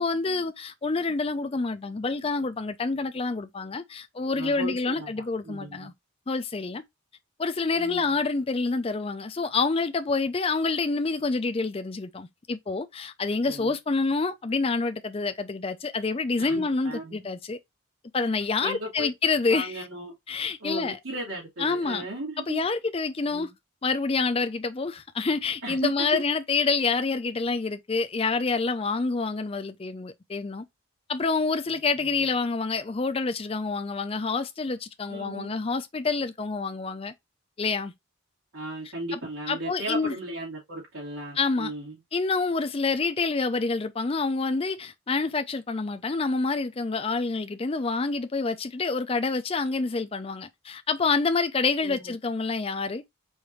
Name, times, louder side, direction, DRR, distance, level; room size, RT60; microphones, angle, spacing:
voice 1, 0.0-5.9 6.3-6.8 7.4-17.6 18.1-19.8 20.3-21.0 21.6-22.1 22.4-23.5 23.8-30.6 31.1-37.1 37.6-37.9 39.1-39.2 39.5-40.1 41.3-41.7 42.1-53.0, left 4 dB, 25° left, 0.4 m, -27 dB
voice 2, 4.3-5.9 7.7-8.0 13.4-13.7 16.4-17.2 18.6-19.1 19.5-20.1 20.6-22.6 23.3-23.5 25.6-26.2 35.1-35.5 38.5-42.0 51.8-52.1, right 1 dB, 85° right, 2.5 m, -36 dB
4.9 x 2.6 x 3.1 m
head